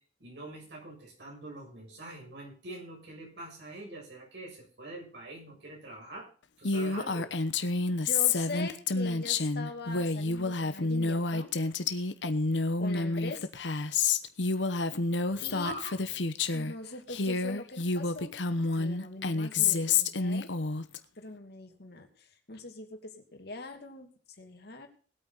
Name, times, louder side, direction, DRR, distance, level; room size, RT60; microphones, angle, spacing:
voice 1, 0.2-6.3 6.6-7.3 15.3-16.1, right 2 dB, 70° right, -1 dB, 7.3 m, -44 dB
Female speech woman speaking, 6.6-16.7 17.1-21.0, left 4 dB, 85° left, 1.0 m, -29 dB
voice 2, 8.0-11.5 12.8-13.5 15.4-15.9 16.5-18.3 18.7-20.5 21.2-24.1 24.4-24.9, left 2 dB, 65° left, 4 dB, 2.6 m, -42 dB
19.5 x 8.8 x 4.0 m, 0.41 s
head